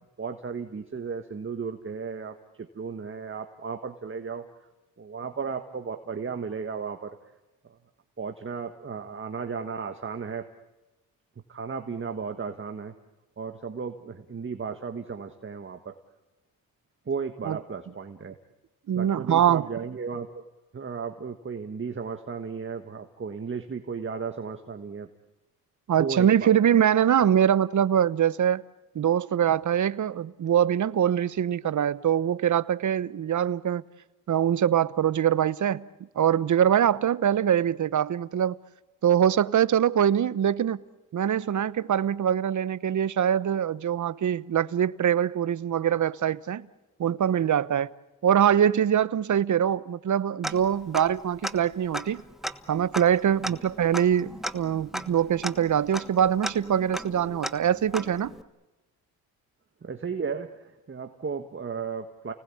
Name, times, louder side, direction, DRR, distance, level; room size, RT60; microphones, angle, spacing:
voice 1, 0.2-4.5 5.0-7.2 8.2-10.5 11.5-12.9 13.4-15.9 17.0-18.4 18.9-20.4 20.7-25.1 26.0-26.5 59.8-62.3, right 5 dB, 30° right, 1.6 m, -34 dB
voice 2, 18.9-19.7 25.9-28.6 28.9-33.8 34.3-35.9 36.1-38.6 39.0-40.8 41.1-46.7 47.0-47.9 48.2-52.2 52.7-58.3, right 9 dB, 50° right, 0.9 m, -23 dB
Tick-tock, 50.4-51.2 51.4-51.5 51.9-58.4, equal, ahead, 1.4 m, -36 dB
30.0 x 19.5 x 8.6 m
cardioid pair, 75°, 39 cm